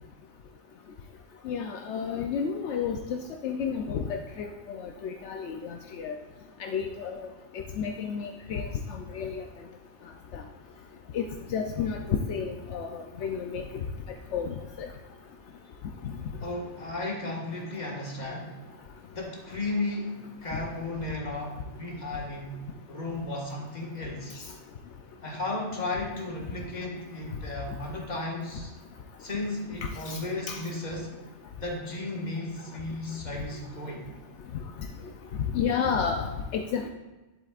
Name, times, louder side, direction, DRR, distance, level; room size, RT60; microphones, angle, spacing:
voice 1, 1.5-6.2 6.6-7.2 7.8-9.4 10.3-10.4 11.1-11.2 11.5-12.9 13.2-13.6 14.3-14.9 30.1-30.2 30.5-30.6 35.5-36.9, left 6 dB, 75° left, 3 dB, 0.9 m, -31 dB
voice 2, 16.4-18.6 19.1-22.5 22.9-24.3 25.2-28.7 29.2-31.1 31.6-34.0, left 2 dB, 40° left, -1 dB, 1.6 m, -34 dB
11.0 x 7.5 x 2.4 m, 1.2 s
omnidirectional pair, 1.2 m